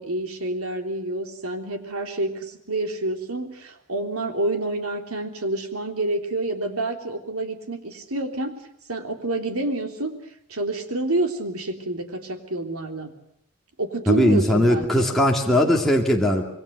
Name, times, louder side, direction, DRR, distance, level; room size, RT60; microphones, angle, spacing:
voice 1, 0.0-8.5 8.9-10.1 10.5-13.1 13.8-15.2 15.5-15.7, right 2 dB, 85° right, 5 dB, 3.5 m, -28 dB
voice 2, 14.1-16.4, left 1 dB, ahead, -1 dB, 2.5 m, -19 dB
27.0 x 22.5 x 6.7 m, 0.75 s
head